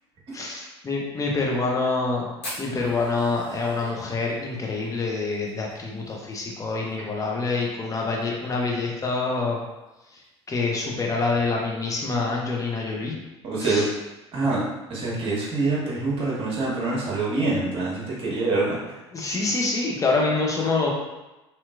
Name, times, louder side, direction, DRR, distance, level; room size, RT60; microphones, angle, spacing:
voice 1, 0.3-2.3 2.6-9.6 10.5-13.2 13.6-13.9 19.1-20.9, left 3 dB, 20° left, -1 dB, 0.8 m, -26 dB
Fire, 2.4-6.9 7.2-7.3 7.5-7.6 8.0-8.4 8.9-9.0 10.1-10.2, left 1 dB, 75° left, 1.2 m, -41 dB
voice 2, 13.4-13.8 14.3-14.6 14.9-18.9, right 3 dB, 40° right, -5 dB, 1.1 m, -25 dB
2.9 x 2.8 x 2.4 m, 1.0 s
figure-of-eight pair, 65°, 15 cm